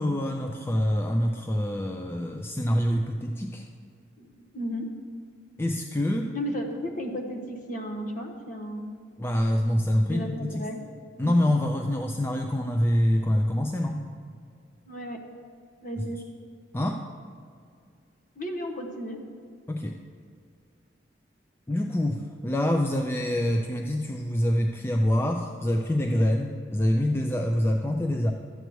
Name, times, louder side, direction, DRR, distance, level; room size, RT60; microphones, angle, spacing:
voice 1, 0.0-3.6 5.6-6.3 9.2-10.5 11.2-14.0 16.0-16.1 16.7-17.0 19.7-20.0 21.7-28.3, left 1 dB, 10° left, 2 dB, 0.3 m, -25 dB
voice 2, 4.2-4.9 6.3-8.9 10.0-10.9 11.2-11.3 14.9-15.2 15.8-16.2 18.4-19.2, equal, 45° left, 1 dB, 1.1 m, -34 dB
12.5 x 8.0 x 3.1 m, 2.3 s
head